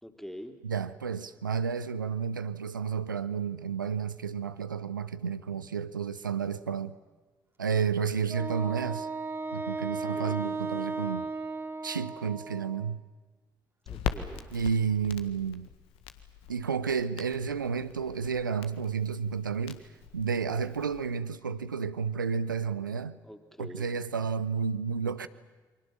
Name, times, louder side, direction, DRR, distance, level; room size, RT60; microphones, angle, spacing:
voice 1, 0.0-0.6 10.1-10.5 13.8-14.5 23.2-23.9, equal, 5° left, 3.4 m, -45 dB
voice 2, 0.6-7.0 7.6-9.1 9.5-11.3 11.8-13.0 14.5-15.7 16.5-19.8 20.1-23.2 23.6-25.3, right 6 dB, 85° right, 0.8 m, -31 dB
Wind instrument woodwind instrument, 8.3-12.9, right 3 dB, 25° right, 2.5 m, -35 dB
Crackle, 13.9-21.2, left 8 dB, 65° left, 1.7 m, -41 dB
28.5 x 24.0 x 7.3 m
figure-of-eight pair, 45°, 10 cm